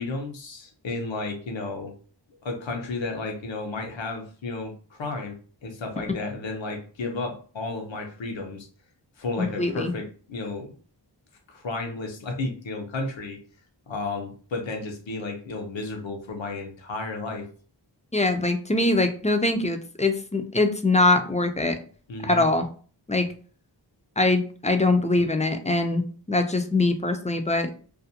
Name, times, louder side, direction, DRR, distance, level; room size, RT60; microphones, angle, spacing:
voice 1, 0.0-1.9 2.4-5.4 5.6-8.7 9.2-10.7 11.5-13.4 13.9-17.5 22.1-22.5, left 3 dB, 85° left, 4 dB, 0.7 m, -33 dB
voice 2, 9.4-9.9 18.1-21.8 22.2-22.7 23.1-23.3 24.2-26.0 26.3-27.7, left 2 dB, 20° left, 6 dB, 0.3 m, -23 dB
2.5 x 2.1 x 2.7 m, 0.41 s
wide cardioid pair, 45°, 44 cm